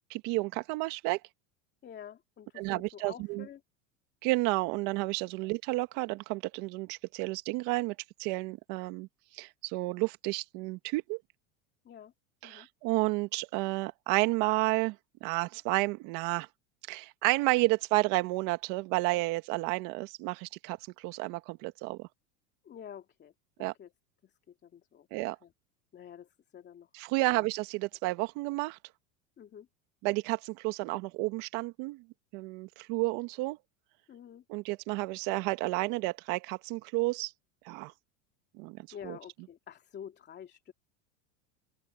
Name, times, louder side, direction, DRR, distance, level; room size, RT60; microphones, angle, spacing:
voice 1, 0.1-1.2 2.6-3.4 4.2-9.1 9.3-11.2 12.4-14.9 15.2-16.5 16.9-22.1 23.6-23.7 25.1-25.3 26.9-28.8 30.0-32.0 32.3-33.6 34.5-37.3 37.6-37.9 38.6-39.2, right 23 dB, 60° right, 1.8 m, -31 dB
voice 2, 1.8-3.6 5.4-5.5 11.8-12.1 12.4-12.7 22.6-23.3 23.6-23.9 24.2-25.1 25.4-25.5 25.9-26.9 27.2-27.5 29.4-29.7 34.1-34.4 38.9-40.7, left 9 dB, 30° left, 2.6 m, -48 dB
open air
supercardioid pair, 130°, 35 cm